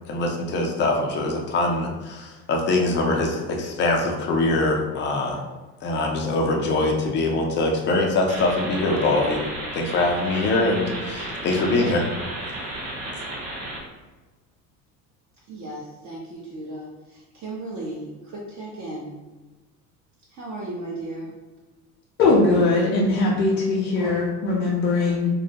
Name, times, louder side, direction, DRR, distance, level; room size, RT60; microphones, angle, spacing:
voice 1, 0.1-5.4 5.8-9.4 9.7-12.1, left 2 dB, 25° left, 1 dB, 0.3 m, -23 dB
sound 1, 8.3-13.8, right 1 dB, 70° right, 1.0 m, -33 dB
voice 2, 15.5-19.2 20.3-21.4, right 2 dB, 35° right, -4 dB, 0.6 m, -35 dB
voice 3, 22.2-25.3, left 3 dB, 85° left, -5 dB, 0.6 m, -20 dB
2.2 x 2.1 x 2.7 m, 1.2 s
hypercardioid pair, 75°, 49 cm